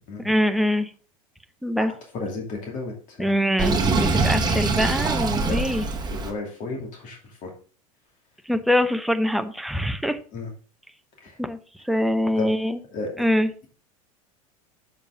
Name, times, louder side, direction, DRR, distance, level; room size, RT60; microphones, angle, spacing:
voice 1, 0.2-0.9 1.6-1.9 3.2-5.9 8.5-10.2 11.4-11.6 11.9-12.8 13.2-13.5, equal, ahead, 9 dB, 0.7 m, -23 dB
voice 2, 2.1-3.3 4.4-4.7 5.5-5.8 6.1-7.5 10.3-10.5 11.2-11.4 12.4-12.5 12.9-13.3, left 3 dB, 45° left, 1 dB, 2.5 m, -34 dB
Sink (filling or washing), 3.6-6.3, right 3 dB, 25° right, 1.3 m, -23 dB
7.1 x 5.8 x 3.7 m, 0.39 s
hypercardioid pair, 80°, 18 cm